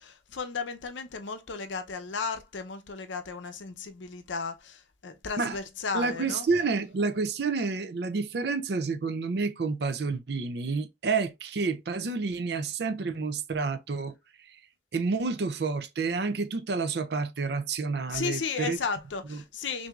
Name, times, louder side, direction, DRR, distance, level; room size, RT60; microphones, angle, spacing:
voice 1, 0.0-6.5 18.1-19.9, left 5 dB, 75° left, 0.6 m, -34 dB
voice 2, 5.9-14.1 14.9-18.8 19.3-19.4, right 4 dB, 60° right, 0.4 m, -29 dB
5.8 x 2.7 x 2.3 m
head